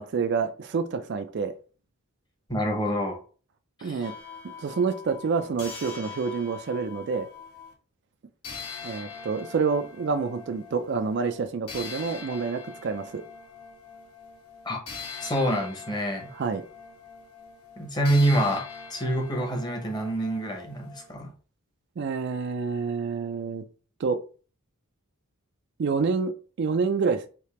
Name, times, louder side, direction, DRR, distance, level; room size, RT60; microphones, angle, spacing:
voice 1, 0.0-1.5 3.8-4.1 4.6-7.3 8.8-13.2 16.3-16.6 22.0-23.6 24.0-24.2 25.8-27.3, right 5 dB, 50° right, 0.3 m, -28 dB
voice 2, 2.5-3.2 3.8-4.0 14.6-14.8 15.2-16.3 17.8-18.6 18.9-21.3, right 1 dB, 20° left, 0.9 m, -26 dB
sound 1, 4.0-7.7 8.4-21.1, left 5 dB, 80° left, 1.2 m, -43 dB
3.4 x 2.8 x 4.2 m
head